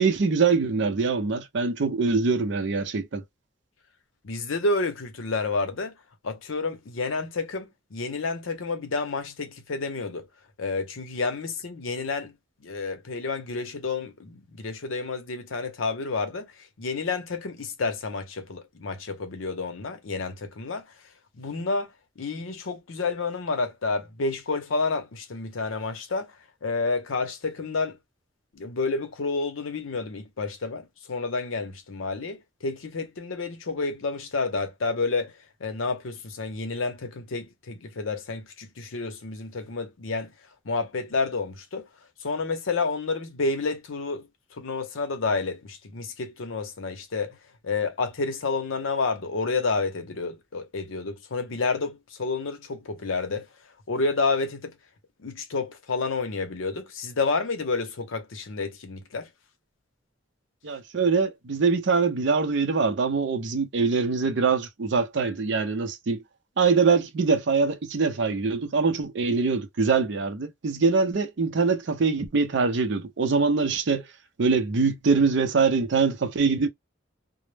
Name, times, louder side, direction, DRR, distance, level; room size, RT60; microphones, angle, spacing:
voice 1, 0.0-3.2 60.6-66.2 66.6-74.1 74.4-76.7, right 4 dB, 60° right, 0.5 m, -23 dB
voice 2, 4.2-5.9 6.2-10.3 10.6-12.3 12.6-16.5 16.8-20.8 21.3-21.9 22.2-26.3 26.6-28.0 28.5-35.3 35.6-40.3 40.6-41.9 42.2-44.3 44.6-47.4 47.6-53.5 53.9-54.7 55.2-59.3, left 3 dB, 80° left, 0.7 m, -30 dB
2.0 x 2.0 x 3.1 m
head